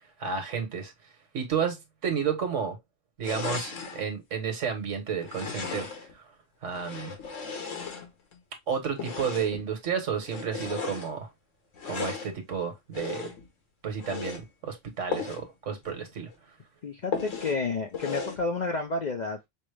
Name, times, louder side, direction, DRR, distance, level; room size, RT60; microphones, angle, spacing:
voice 1, 0.2-0.9 1.3-2.8 3.2-5.9 6.6-7.1 8.7-11.3 11.8-13.3 13.8-16.3, right 7 dB, 75° right, 1.4 m, -31 dB
sound 1, 3.2-4.0 5.2-6.1 6.7-8.4 8.9-9.7 10.2-11.1 11.7-12.3 12.9-13.5 13.9-14.4 15.1-15.5 15.8-15.9 16.3-16.4 17.1-17.6 17.9-18.4, left 5 dB, 85° left, 1.4 m, -35 dB
voice 2, 16.8-19.5, left 3 dB, 50° left, 0.6 m, -30 dB
5.3 x 2.1 x 3.2 m
omnidirectional pair, 1.3 m